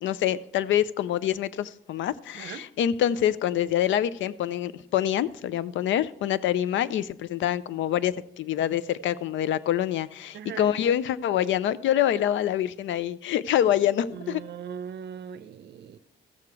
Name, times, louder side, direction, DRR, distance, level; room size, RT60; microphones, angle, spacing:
voice 1, 0.0-14.4, left 11 dB, 70° left, 0.5 m, -26 dB
voice 2, 2.3-2.7 10.3-10.7 14.1-16.0, right 8 dB, 60° right, 0.7 m, -39 dB
14.5 x 6.8 x 4.7 m
cardioid pair, 90°, 20 cm